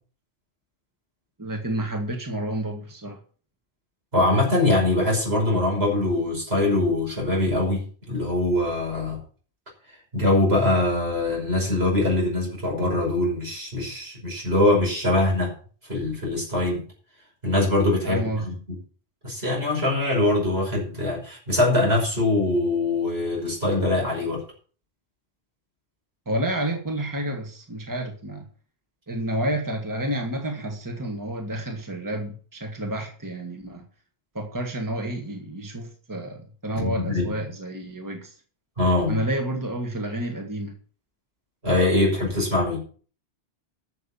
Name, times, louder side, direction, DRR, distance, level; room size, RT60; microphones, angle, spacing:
voice 1, 1.4-3.2 18.0-18.5 26.3-28.4 29.1-33.8 34.4-38.3 39.1-40.8, right 1 dB, 20° right, 3 dB, 1.7 m, -30 dB
voice 2, 4.1-9.2 10.1-15.5 15.9-16.8 17.4-18.8 19.2-24.4 36.8-37.3 38.8-39.2 41.6-42.8, left 2 dB, 70° right, -1 dB, 5.9 m, -23 dB
11.5 x 6.9 x 7.0 m, 0.41 s
omnidirectional pair, 1.1 m